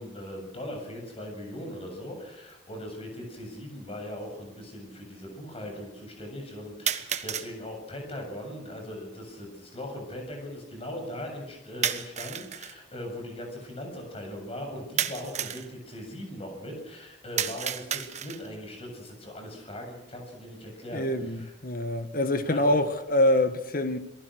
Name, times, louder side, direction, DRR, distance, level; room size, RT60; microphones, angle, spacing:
voice 1, 0.0-21.5 22.4-22.8, left 1 dB, 35° left, 7.3 m, -39 dB
sound 1, 2.5-2.6 3.6-3.7 6.9-7.5 11.8-12.7 15.0-15.7 17.4-18.5, right 9 dB, 40° right, 1.3 m, -31 dB
voice 2, 20.9-24.0, left 1 dB, 50° left, 1.7 m, -25 dB
28.0 x 19.0 x 6.4 m
head